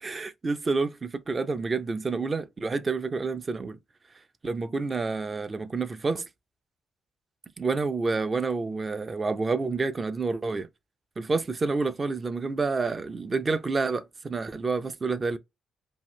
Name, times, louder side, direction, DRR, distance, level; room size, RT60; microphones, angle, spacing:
voice 1, 0.0-3.8 4.4-6.3 7.6-10.7 11.2-15.4, right 4 dB, 30° right, 0.4 m, -28 dB
2.7 x 2.3 x 3.0 m
cardioid pair, 90°, 0 cm